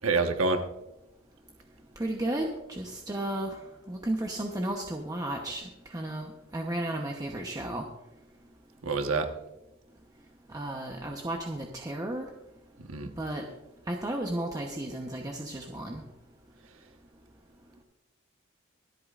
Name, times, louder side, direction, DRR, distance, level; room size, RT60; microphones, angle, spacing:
voice 1, 0.0-0.7 8.8-9.3 12.8-13.1, right 3 dB, 80° right, 5 dB, 1.2 m, -27 dB
voice 2, 2.0-3.6 3.9-7.8 10.5-12.3 13.2-13.4 13.9-16.0, right 1 dB, 20° right, 1 dB, 0.9 m, -33 dB
24.5 x 8.6 x 2.5 m, 0.95 s
head